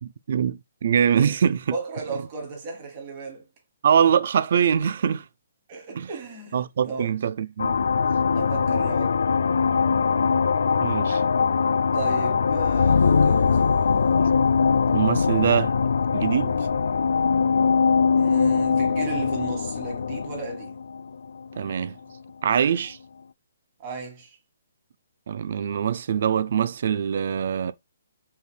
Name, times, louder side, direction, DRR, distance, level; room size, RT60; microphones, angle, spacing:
voice 1, 0.0-1.7 3.8-5.3 5.9-6.1 6.5-7.7 10.8-11.2 14.9-15.7 16.1-16.6 21.6-22.0 22.4-23.0 25.3-27.7, right 8 dB, 55° right, 0.4 m, -23 dB
voice 2, 1.7-3.4 5.7-7.1 8.4-9.1 11.9-13.6 18.2-20.8 23.8-24.4, right 4 dB, 30° right, 1.8 m, -35 dB
sound 1, 7.6-21.7, left 5 dB, 75° left, 0.3 m, -22 dB
5.5 x 3.3 x 2.2 m
hypercardioid pair, 160°, 0 cm